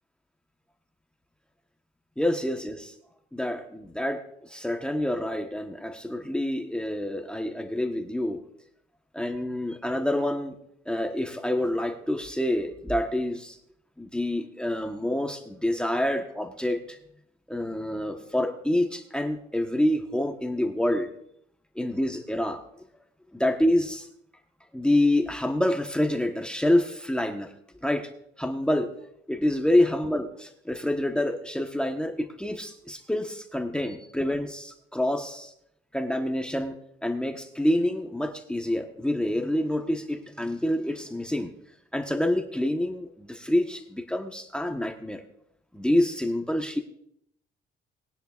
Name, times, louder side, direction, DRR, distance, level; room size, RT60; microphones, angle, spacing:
voice 1, 2.2-2.9 3.3-8.4 9.1-10.5 10.9-13.6 14.0-17.0 17.5-21.1 21.7-22.6 23.3-24.1 24.7-27.5 27.8-28.1 28.4-28.9 29.3-35.5 35.9-36.7 37.0-41.5 41.9-45.2 45.7-46.8, left 1 dB, 5° left, 4 dB, 1.2 m, -27 dB
20.5 x 10.0 x 2.5 m, 0.71 s
cardioid pair, 90°, 20 cm